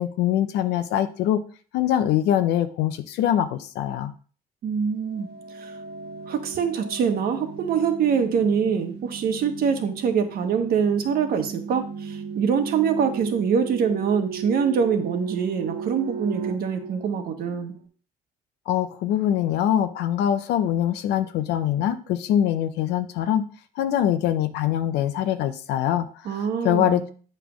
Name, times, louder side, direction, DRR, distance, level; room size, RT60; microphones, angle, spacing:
voice 1, 0.0-1.4 1.7-4.1 18.7-23.5 23.8-27.1, left 11 dB, 80° left, 8 dB, 0.6 m, -23 dB
voice 2, 4.6-5.3 5.6-5.7 6.3-17.8 26.2-27.1, right 6 dB, 60° right, 6 dB, 1.3 m, -24 dB
sound 1, 5.1-17.8, right 6 dB, 80° right, 1.1 m, -36 dB
8.2 x 3.3 x 6.1 m, 0.40 s
cardioid pair, 110°, 17 cm